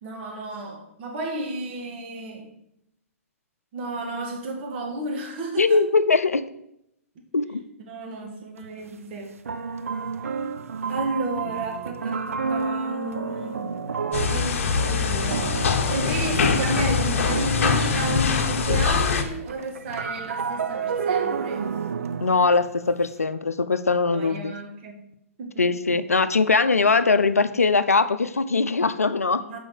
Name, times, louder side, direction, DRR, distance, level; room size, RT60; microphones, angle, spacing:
voice 1, 0.0-2.5 3.7-5.8 7.9-9.3 10.9-13.7 14.2-15.6 15.9-21.6 24.1-25.0 25.4-25.7 29.4-29.6, right 2 dB, 45° right, 2 dB, 2.0 m, -32 dB
voice 2, 5.6-6.5 7.3-7.6 22.2-24.5 25.6-29.4, left 4 dB, 85° left, 13 dB, 0.5 m, -21 dB
sound 1, 8.6-8.7 9.4-19.0 19.2-23.1, right 5 dB, 70° right, 0.6 m, -30 dB
sound 2, 14.1-19.2, left 6 dB, 60° left, 1.0 m, -23 dB
6.1 x 5.0 x 6.7 m, 0.80 s
figure-of-eight pair, 115°, 8 cm